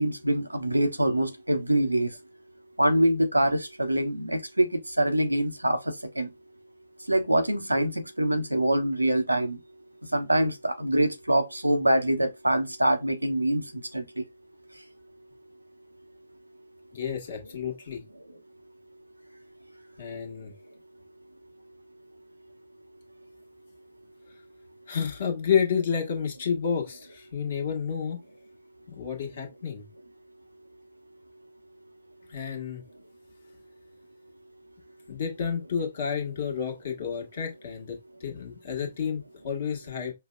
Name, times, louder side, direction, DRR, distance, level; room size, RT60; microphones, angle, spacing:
voice 1, 0.0-2.1 2.8-6.3 7.1-9.6 10.1-14.2, right 1 dB, 90° right, 0.6 m, -25 dB
voice 2, 16.9-18.0 20.0-20.5 24.9-28.2 28.9-29.9 32.3-32.8 35.1-40.1, left 7 dB, 50° left, 1.3 m, -30 dB
5.3 x 2.1 x 2.3 m
figure-of-eight pair, 125°, 0 cm